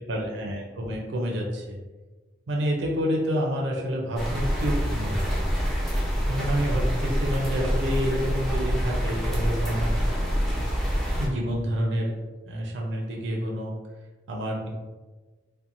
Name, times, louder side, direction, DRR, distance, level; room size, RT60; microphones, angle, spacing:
voice 1, 0.1-1.8 2.5-5.5 6.3-10.0 11.2-12.2 12.5-13.8 14.3-14.7, equal, 70° right, -1 dB, 0.5 m, -28 dB
sound 1, 4.2-11.3, equal, ahead, 0.5 m, -26 dB
2.5 x 2.1 x 2.8 m, 1.3 s
head